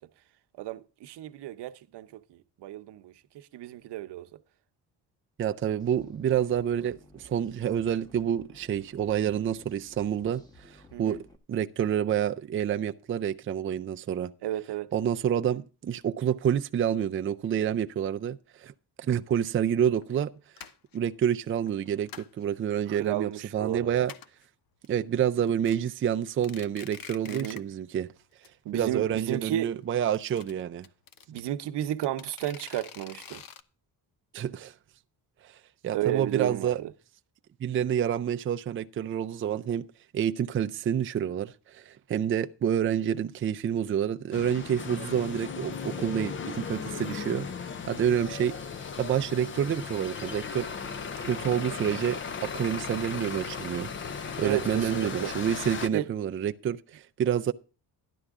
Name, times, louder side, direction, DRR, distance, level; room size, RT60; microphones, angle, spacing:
voice 1, 0.6-4.3 10.9-11.2 14.4-14.9 22.9-24.1 27.2-27.6 28.6-29.7 31.3-33.4 35.9-36.9 54.4-55.3 55.9-56.1, right 13 dB, 80° right, 0.9 m, -33 dB
voice 2, 5.4-11.2 11.5-14.3 14.9-18.7 19.0-20.3 20.9-24.1 24.9-28.1 28.7-30.9 34.3-34.7 35.4-35.5 35.8-36.8 37.6-39.9 40.1-47.5 47.9-48.5 49.0-50.7 51.3-57.5, right 9 dB, 30° right, 0.5 m, -28 dB
sound 1, 5.8-11.4, left 1 dB, 10° left, 1.3 m, -55 dB
sound 2, 19.4-19.5 20.0-20.2 20.6-21.0 21.7-22.4 22.8-23.4 23.7-23.8 24.0-24.4 24.8-24.9 25.3-25.8 26.2-27.7 28.0-28.1 28.4-28.5 28.8-28.9 29.9-31.4 32.0-33.6, left 8 dB, 60° left, 0.8 m, -46 dB
sound 3, 44.3-55.9, left 6 dB, 30° left, 0.5 m, -36 dB
12.5 x 11.0 x 3.6 m
cardioid pair, 165°, 40 cm